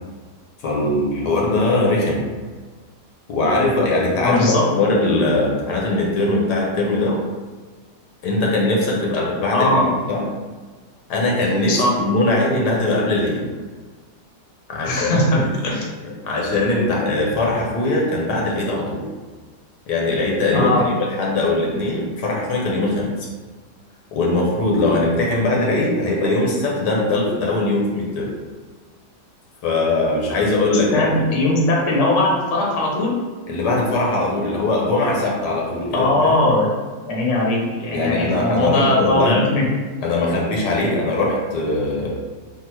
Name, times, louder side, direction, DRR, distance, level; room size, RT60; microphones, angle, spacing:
voice 1, 0.6-2.2 3.3-7.2 8.2-10.2 11.1-13.4 14.7-15.5 16.0-19.0 19.9-23.3 24.1-28.3 29.6-31.1 33.5-36.4 37.9-39.4 40.0-42.2, left 2 dB, 75° left, -2 dB, 1.4 m, -21 dB
voice 2, 4.2-4.6 9.5-9.9 11.7-11.9 14.8-15.8 20.5-20.8 30.9-33.1 35.9-36.7 37.0-39.7, left 2 dB, 50° left, -3 dB, 1.0 m, -19 dB
3.7 x 2.4 x 4.5 m, 1.4 s
omnidirectional pair, 1.8 m